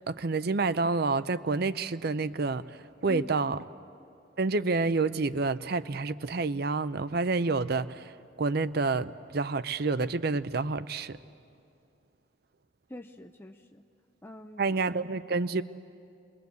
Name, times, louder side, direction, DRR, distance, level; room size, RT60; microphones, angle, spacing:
voice 1, 0.1-2.6 3.0-3.6 4.4-8.1 8.4-11.2 14.6-15.6, right 3 dB, 55° right, 14 dB, 0.6 m, -28 dB
voice 2, 3.1-3.5 12.9-13.9 14.2-14.8, left 1 dB, 10° left, 4 dB, 0.5 m, -43 dB
27.0 x 21.5 x 8.3 m, 2.5 s
head